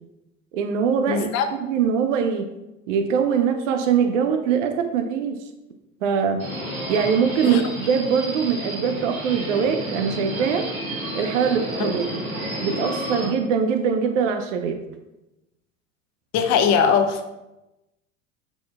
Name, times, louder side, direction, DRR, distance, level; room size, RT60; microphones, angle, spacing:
voice 1, 0.5-1.3 1.6-2.5 2.9-5.4 6.0-6.5 6.9-10.7 11.1-12.2 12.6-14.8, right 6 dB, 65° right, 6 dB, 0.6 m, -22 dB
voice 2, 1.1-1.5 7.5-7.6 16.3-17.3, left 6 dB, 40° left, 8 dB, 0.6 m, -20 dB
Subway metro underground, 6.4-13.3, equal, 85° right, 1.4 m, -31 dB
5.8 x 3.8 x 2.3 m, 0.96 s
figure-of-eight pair, 75°, 40 cm